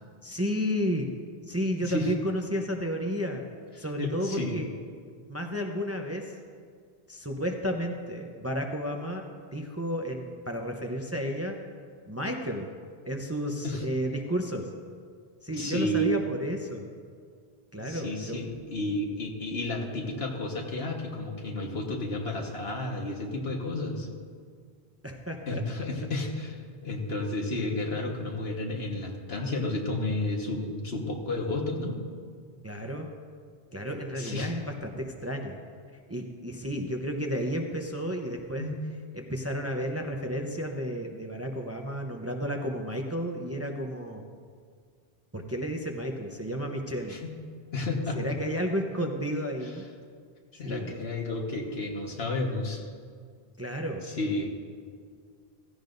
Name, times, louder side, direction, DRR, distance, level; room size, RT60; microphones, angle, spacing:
voice 1, 0.2-1.1 1.5-3.4 3.8-4.7 5.3-6.2 7.1-9.3 9.5-11.5 12.1-12.7 13.1-14.7 15.4-16.9 17.7-18.4 25.0-25.6 32.6-33.1 33.7-35.6 36.1-38.7 39.1-44.2 45.3-47.2 48.1-49.8 50.6-51.1 53.6-54.0, equal, 15° right, 2 dB, 0.7 m, -32 dB
voice 2, 1.8-2.1 3.8-4.6 13.6-13.8 15.6-16.1 17.8-24.1 25.5-26.6 26.8-32.0 34.2-34.5 38.6-38.8 47.1-47.3 47.7-48.2 50.5-52.9 54.0-54.5, left 2 dB, 70° left, 0 dB, 1.7 m, -32 dB
16.0 x 15.5 x 2.6 m, 2.1 s
omnidirectional pair, 1.1 m